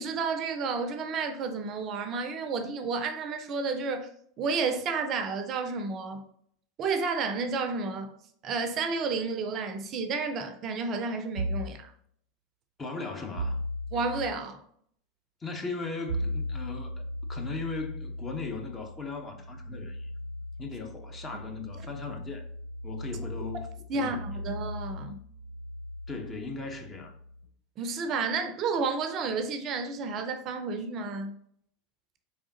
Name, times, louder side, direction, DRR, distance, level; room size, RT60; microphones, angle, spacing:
voice 1, 0.0-4.1 4.4-6.2 6.8-8.1 8.4-11.9 13.9-14.6 21.3-21.4 23.9-25.2 27.8-31.3, right 4 dB, 40° right, 0.5 m, -31 dB
sound 1, 11.4-11.8 13.3-14.3 16.1-27.4, equal, 75° left, 1.7 m, -37 dB
voice 2, 12.8-13.7 15.4-20.1 20.6-22.5 22.8-23.7 23.9-24.3 26.1-27.1, left 4 dB, 25° left, 0.8 m, -38 dB
4.6 x 3.6 x 2.7 m
figure-of-eight pair, 80°, 0 cm